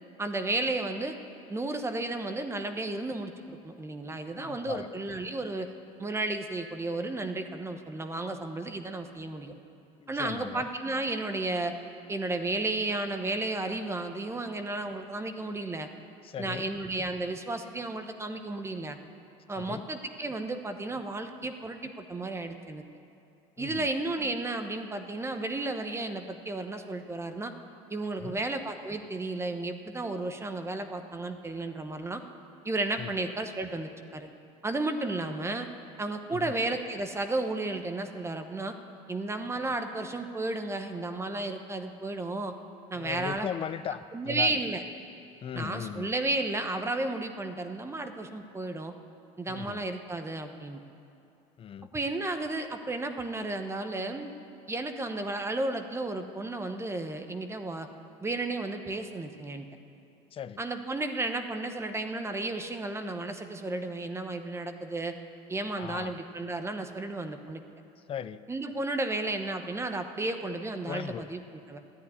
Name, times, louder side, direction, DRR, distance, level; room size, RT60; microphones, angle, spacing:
voice 1, 0.2-1.2 1.5-5.7 6.0-9.5 10.1-11.7 12.1-15.9 16.4-19.0 19.5-22.8 23.6-27.5 27.9-32.2 32.6-34.3 34.6-35.7 36.0-38.7 39.1-42.5 42.9-43.5 44.1-44.8 45.5-48.9 49.4-50.8 51.9-54.3 54.7-57.9 58.2-59.6 60.6-65.2 65.5-67.6 68.5-71.8, right 2 dB, 15° right, 7 dB, 1.0 m, -33 dB
voice 2, 4.3-4.9 10.0-10.7 16.2-16.7 19.6-19.9 23.6-23.9 28.2-28.4 33.0-33.1 36.3-36.5 42.9-44.6 45.4-46.1 49.5-49.8 51.6-51.9 60.3-60.6 65.8-66.1 68.0-68.4 70.9-71.3, left 8 dB, 35° left, 14 dB, 0.5 m, -38 dB
13.5 x 10.0 x 9.7 m, 2.7 s
supercardioid pair, 110°, 17 cm